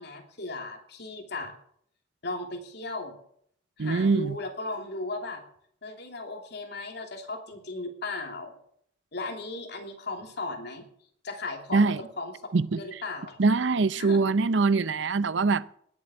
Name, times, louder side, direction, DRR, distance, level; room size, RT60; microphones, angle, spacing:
voice 1, 0.0-1.5 2.2-3.1 3.8-5.4 5.8-8.5 9.1-10.8 11.2-12.3 12.8-13.4 14.0-14.2, left 2 dB, 65° left, 2.9 m, -36 dB
voice 2, 3.8-4.4 11.7-12.0 12.5-12.8 13.4-15.6, right 4 dB, 70° right, 0.6 m, -23 dB
19.0 x 7.9 x 7.1 m
head